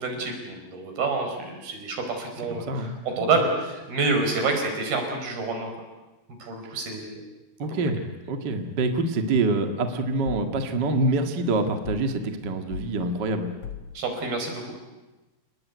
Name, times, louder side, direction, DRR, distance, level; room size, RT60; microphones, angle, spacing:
voice 1, 0.0-5.7 6.4-7.2 13.9-14.7, right 3 dB, 60° right, 4 dB, 6.5 m, -28 dB
voice 2, 2.5-3.3 6.6-6.8 7.6-13.5, right 2 dB, 40° right, 6 dB, 1.5 m, -26 dB
sound 1, 10.3-10.6 11.8-12.2 12.7-13.0 13.6-14.0, left 7 dB, 55° left, 2.4 m, -37 dB
29.5 x 19.0 x 9.6 m, 1.1 s
omnidirectional pair, 4.9 m